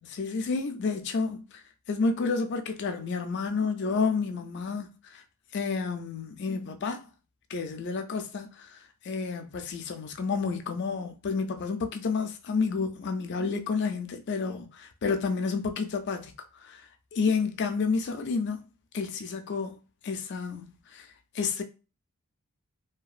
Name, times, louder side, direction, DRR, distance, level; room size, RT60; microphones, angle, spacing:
voice 1, 0.1-1.6 1.9-5.2 5.5-7.1 7.5-8.7 9.0-16.3 16.6-16.8 17.1-18.6 18.9-19.8 20.0-21.1 21.3-21.6, left 4 dB, 50° left, 0.4 m, -30 dB
2.8 x 2.3 x 2.4 m
head